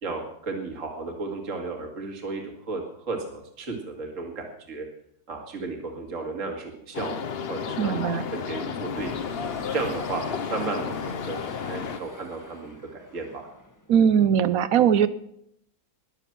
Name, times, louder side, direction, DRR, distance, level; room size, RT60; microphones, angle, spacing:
voice 1, 0.0-4.9 5.3-7.2 7.5-8.0 8.3-9.1 9.7-10.2 10.5-13.5, right 3 dB, 45° right, 2 dB, 2.3 m, -34 dB
sound 1, 6.9-12.0, left 7 dB, 50° left, 0.7 m, -32 dB
voice 2, 7.8-8.2 13.9-15.1, right 8 dB, 65° right, 14 dB, 1.0 m, -20 dB
sound 2, 8.8-14.0, left 2 dB, 10° left, 1.0 m, -44 dB
21.0 x 7.2 x 5.9 m, 0.72 s
omnidirectional pair, 1.9 m